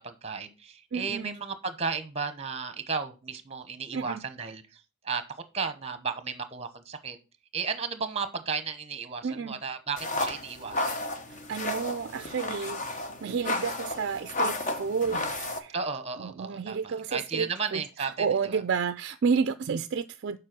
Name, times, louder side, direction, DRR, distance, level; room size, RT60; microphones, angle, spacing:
voice 1, 0.0-4.6 5.0-5.2 5.5-7.2 7.5-11.0 15.7-18.6, right 5 dB, 30° right, 0.9 m, -34 dB
voice 2, 0.9-1.4 3.9-4.2 9.2-9.6 11.3-15.7 16.2-20.4, right 5 dB, 50° right, 0.4 m, -31 dB
sound 1, 10.0-15.6, left 2 dB, 35° left, 0.9 m, -32 dB
7.4 x 4.9 x 5.9 m
head